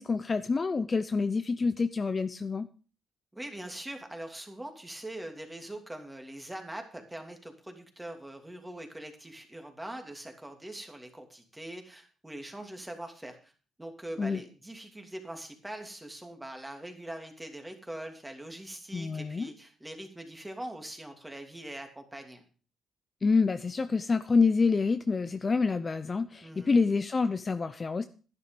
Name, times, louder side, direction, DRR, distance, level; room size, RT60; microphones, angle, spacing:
voice 1, 0.0-2.7 14.2-14.4 18.9-19.5 23.2-28.0, left 4 dB, 30° left, 11 dB, 0.6 m, -27 dB
voice 2, 3.3-13.5 13.8-22.4 26.4-26.7, right 1 dB, 10° right, 4 dB, 2.7 m, -42 dB
11.5 x 9.8 x 5.2 m, 0.38 s
cardioid pair, 90°, 0 cm